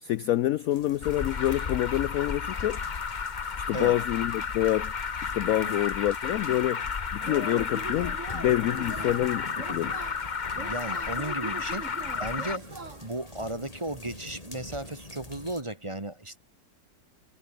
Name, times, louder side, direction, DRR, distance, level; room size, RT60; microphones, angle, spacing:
voice 1, 0.0-2.8 3.6-4.9 5.2-6.8 7.1-10.1, left 14 dB, 75° left, 0.8 m, -27 dB
sound 1, 0.7-15.6, left 1 dB, 20° left, 3.7 m, -47 dB
Alarm, 1.0-12.6, left 5 dB, 35° left, 0.8 m, -32 dB
Yell / Cheering, 7.2-13.3, right 4 dB, 40° right, 2.9 m, -42 dB
voice 2, 10.5-11.9 12.2-12.7 13.0-16.4, right 1 dB, 15° right, 1.7 m, -35 dB
omnidirectional pair, 2.0 m